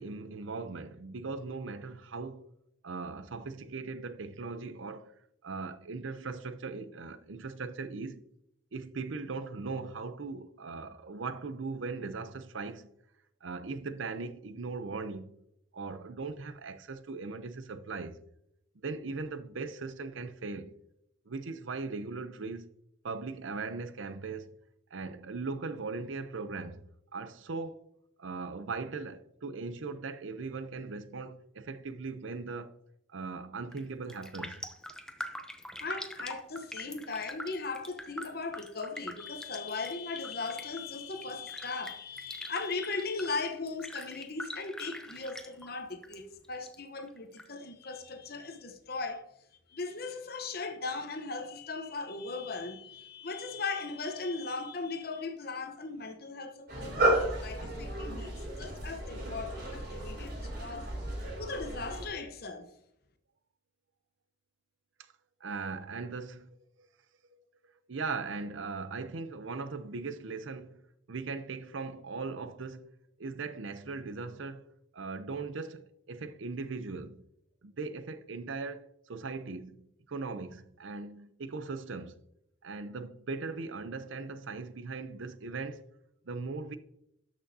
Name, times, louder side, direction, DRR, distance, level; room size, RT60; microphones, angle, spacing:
voice 1, 0.0-2.4 2.8-5.1 5.4-8.2 8.7-12.9 13.4-15.4 15.7-18.2 18.8-20.8 21.3-22.7 23.0-24.5 24.9-26.8 27.1-27.8 28.2-32.7 33.1-34.6 65.4-66.5 67.9-70.8 71.1-72.9 73.2-74.6 74.9-77.1 77.6-82.2 82.6-85.8 86.3-86.8, right 4 dB, 80° right, 0.6 m, -39 dB
Raindrop, 33.6-33.8 34.1-46.2 46.4-47.4 47.8-47.9, left 1 dB, 5° left, 0.6 m, -44 dB
voice 2, 35.8-49.3 49.7-60.9 61.4-62.7, left 4 dB, 50° left, 0.9 m, -38 dB
sound 1, 56.7-62.1, right 1 dB, 50° right, 3.5 m, -33 dB
12.5 x 6.2 x 2.7 m
head